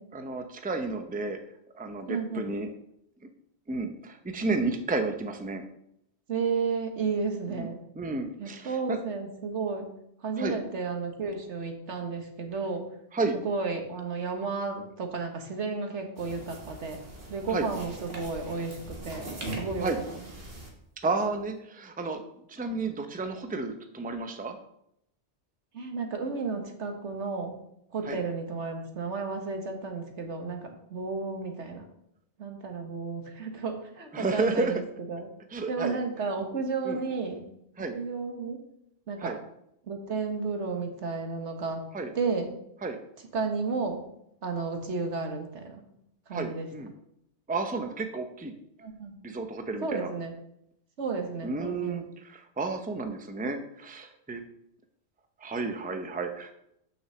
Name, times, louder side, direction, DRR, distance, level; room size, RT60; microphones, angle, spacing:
voice 1, 0.1-1.4 1.7-2.7 3.7-5.6 7.5-7.7 8.0-9.0 10.4-10.6 13.1-13.4 17.5-17.7 19.8-20.0 21.0-22.2 22.5-24.6 28.1-28.2 34.1-34.7 35.5-36.0 36.8-37.0 37.8-38.0 39.2-39.4 41.9-42.1 42.8-43.0 46.3-46.9 47.5-48.5 49.2-50.1 51.4-54.4 55.4-56.5, right 3 dB, 10° right, 6 dB, 0.6 m, -31 dB
voice 2, 2.1-2.5 6.3-7.8 8.4-9.9 10.2-12.9 13.4-17.0 17.3-19.3 19.6-20.0 25.7-27.5 27.9-31.9 32.4-35.3 35.7-37.4 37.9-38.6 39.1-39.4 39.9-41.8 42.1-42.6 43.3-44.0 44.4-45.8 46.3-46.7 48.8-49.2 49.8-50.4 51.0-52.0, right 4 dB, 80° right, 4 dB, 1.6 m, -32 dB
sound 1, 16.2-20.7, right 1 dB, 55° right, 2.0 m, -41 dB
6.3 x 6.0 x 6.9 m, 0.77 s
omnidirectional pair, 1.2 m